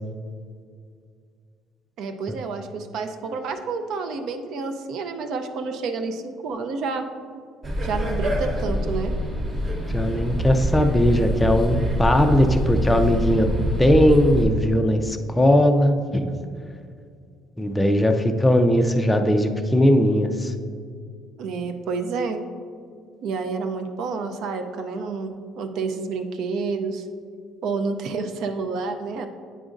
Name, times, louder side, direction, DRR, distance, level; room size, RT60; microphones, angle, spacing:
voice 1, 2.0-7.1 7.8-9.1 21.4-22.4 23.2-27.0 27.6-29.3, right 4 dB, 60° right, 7 dB, 0.5 m, -29 dB
sound 1, 7.6-14.5, equal, 30° right, 0.9 m, -25 dB
voice 2, 9.9-13.5 13.8-16.3 17.6-20.5, left 1 dB, 10° left, 5 dB, 0.3 m, -19 dB
8.9 x 5.0 x 2.5 m, 2.2 s
cardioid pair, 145°, 0 cm